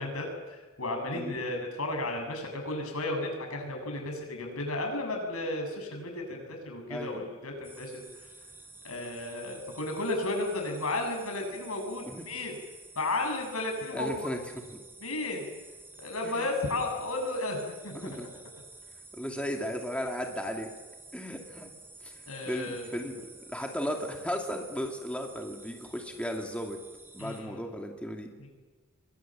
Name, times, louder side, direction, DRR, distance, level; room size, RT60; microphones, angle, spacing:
voice 1, 0.0-8.3 8.8-12.5 13.0-14.3 15.0-15.4 16.0-18.1 22.3-22.9 27.2-27.6 28.4-28.5, left 2 dB, 80° left, 3 dB, 7.5 m, -33 dB
voice 2, 6.9-7.2 12.0-12.2 13.9-14.4 14.7-14.8 16.2-16.5 17.9-18.3 19.1-20.7 21.1-21.7 22.0-26.8 27.1-28.3, equal, 5° left, 2 dB, 2.5 m, -35 dB
sound 1, 7.6-27.4, right 3 dB, 10° right, 4.3 m, -51 dB
29.0 x 23.0 x 7.6 m, 1.3 s
head